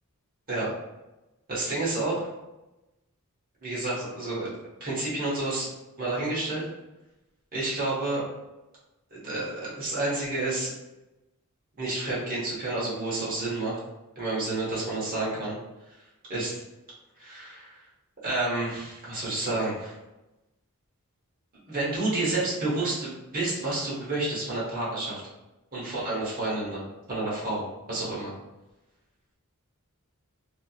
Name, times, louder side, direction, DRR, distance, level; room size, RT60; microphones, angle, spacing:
voice 1, 1.5-2.3 3.6-4.5 4.8-5.7 6.0-6.6 7.5-8.2 9.1-10.7 11.8-13.8 14.2-15.6 16.3-16.6 17.2-17.8 18.2-19.9 21.7-25.2 25.7-28.3, right 2 dB, 40° right, -7 dB, 1.2 m, -30 dB
3.4 x 2.8 x 2.4 m, 1.0 s
head